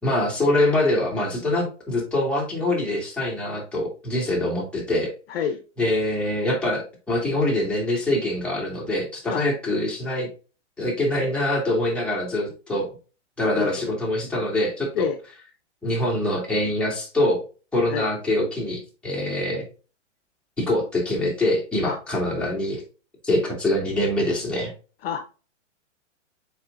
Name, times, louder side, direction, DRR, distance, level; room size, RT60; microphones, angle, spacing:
voice 1, 0.0-5.1 5.8-10.3 10.8-12.9 13.4-15.1 15.8-17.4 17.7-19.7 20.6-22.8 23.2-24.7, left 1 dB, 5° left, -4 dB, 2.7 m, -24 dB
voice 2, 5.3-5.6 9.3-9.4 13.6-14.0 14.9-15.2 17.9-18.1 21.8-22.0 25.0-25.5, left 7 dB, 50° left, 7 dB, 0.9 m, -28 dB
7.2 x 5.0 x 2.6 m, 0.35 s
hypercardioid pair, 130°, 37 cm